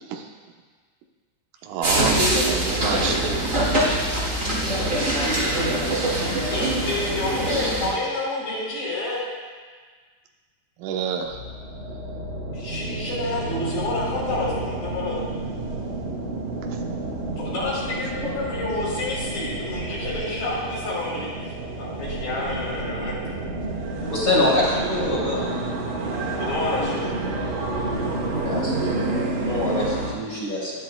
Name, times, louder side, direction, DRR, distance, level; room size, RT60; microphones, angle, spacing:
voice 1, 1.6-3.8 10.8-11.4, right 6 dB, 90° right, 1 dB, 3.6 m, -29 dB
sound 1, 1.8-7.9, right 1 dB, 25° right, 1.7 m, -23 dB
voice 2, 6.5-9.2 12.5-15.2 17.4-21.3 21.8-23.1 26.4-27.1, left 2 dB, 60° left, -6 dB, 5.7 m, -29 dB
sound 2, 11.2-30.1, right 2 dB, 55° right, 2.7 m, -29 dB
voice 3, 24.1-25.5 28.4-28.9 29.1-30.7, left 2 dB, 25° left, -6 dB, 2.0 m, -24 dB
22.0 x 10.5 x 2.3 m, 1.5 s
omnidirectional pair, 5.6 m